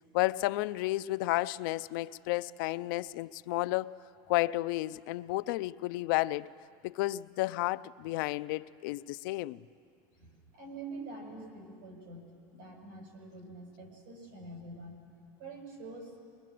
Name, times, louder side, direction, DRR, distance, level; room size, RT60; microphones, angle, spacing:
voice 1, 0.1-3.9 4.3-6.5 6.8-9.6, left 18 dB, 80° left, 0.5 m, -32 dB
voice 2, 10.1-15.0 15.4-16.2, right 2 dB, 75° right, 6.7 m, -46 dB
23.0 x 22.0 x 7.6 m
cardioid pair, 175°, 11 cm